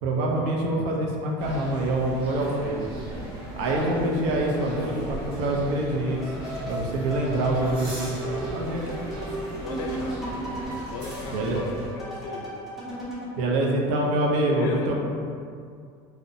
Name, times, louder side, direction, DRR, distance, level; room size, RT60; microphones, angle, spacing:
voice 1, 0.0-2.9 3.6-6.3 6.7-9.0 11.3-11.6 13.4-15.0, right 1 dB, 65° right, -1 dB, 0.4 m, -25 dB
sound 1, 1.4-11.9, equal, 45° right, 0.9 m, -37 dB
sound 2, 6.2-13.3, right 1 dB, ahead, 0.6 m, -35 dB
voice 2, 9.6-10.3 10.9-12.5 14.4-14.9, left 4 dB, 70° left, 1 dB, 0.4 m, -37 dB
2.7 x 2.0 x 2.6 m, 2.3 s
cardioid pair, 160°, 12 cm